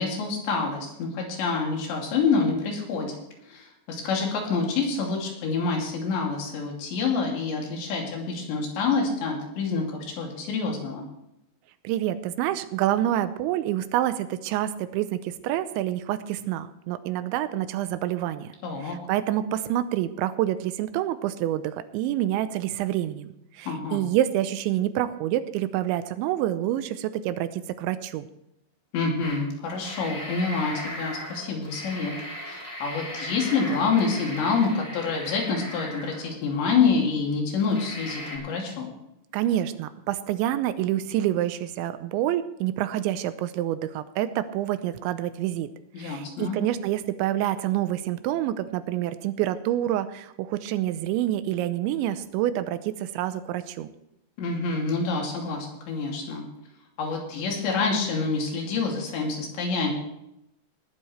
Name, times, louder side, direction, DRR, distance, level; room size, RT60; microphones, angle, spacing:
voice 1, 0.0-3.2 3.5-11.1 18.6-19.0 23.7-24.1 28.9-32.1 32.5-38.9 45.9-46.6 54.4-56.4 57.0-59.9, left 4 dB, 75° left, 0 dB, 4.8 m, -27 dB
voice 2, 11.8-18.5 18.8-23.3 23.6-28.3 39.3-45.7 46.0-53.9, right 13 dB, 85° right, 12 dB, 3.0 m, -27 dB
sound 1, 29.2-29.4 29.7-36.6 37.1-37.2 37.7-38.4, equal, 15° left, 3.6 m, -38 dB
19.0 x 12.0 x 3.3 m, 0.83 s
omnidirectional pair, 5.3 m